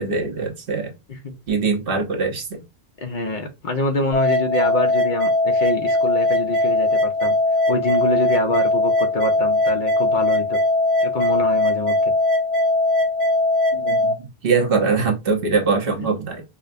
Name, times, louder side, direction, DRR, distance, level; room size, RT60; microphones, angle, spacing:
voice 1, 0.0-0.9 1.5-2.6 13.7-16.4, right 4 dB, 60° right, 1.0 m, -22 dB
voice 2, 3.0-7.4 7.7-10.6 11.0-12.0 16.0-16.2, left 1 dB, 50° left, 0.9 m, -25 dB
sound 1, 4.1-14.1, left 2 dB, 30° right, 1.0 m, -20 dB
4.9 x 2.2 x 2.5 m
omnidirectional pair, 1.1 m